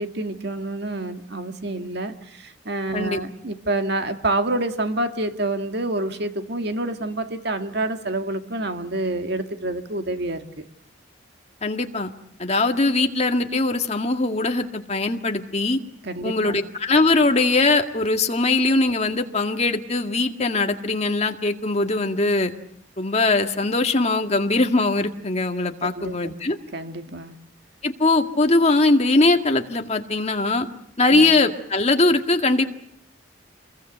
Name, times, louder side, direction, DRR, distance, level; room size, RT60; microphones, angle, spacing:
voice 1, 0.0-10.7 16.0-16.6 25.8-26.3 26.7-27.4 31.1-31.3, right 2 dB, 60° right, 7 dB, 2.0 m, -28 dB
voice 2, 11.6-12.1 12.4-15.8 16.2-22.5 23.0-26.6 27.8-30.7 31.0-32.7, left 2 dB, 35° left, 5 dB, 2.0 m, -21 dB
27.5 x 21.5 x 8.0 m, 0.69 s
head